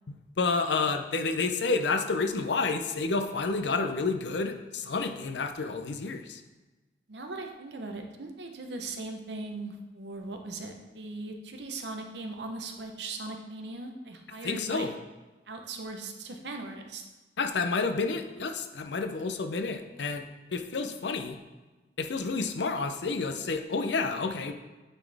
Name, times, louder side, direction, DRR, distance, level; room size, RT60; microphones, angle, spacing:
voice 1, 0.1-6.4 14.4-14.9 17.4-20.2 20.5-21.4 22.0-24.5, left 4 dB, 75° left, 6 dB, 0.6 m, -30 dB
voice 2, 7.1-14.9 15.5-17.0, right 3 dB, 70° right, 4 dB, 0.8 m, -39 dB
9.0 x 4.2 x 3.4 m, 1.2 s
head